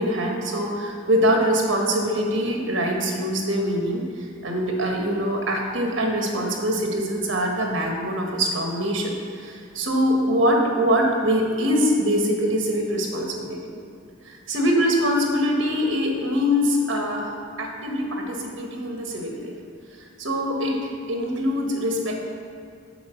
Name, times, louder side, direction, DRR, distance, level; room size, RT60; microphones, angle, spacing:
voice 1, 0.0-4.0 4.4-13.8 14.3-17.3 17.6-19.5 20.2-22.3, equal, 65° right, 0 dB, 1.5 m, -23 dB
7.8 x 5.1 x 6.9 m, 2.3 s
head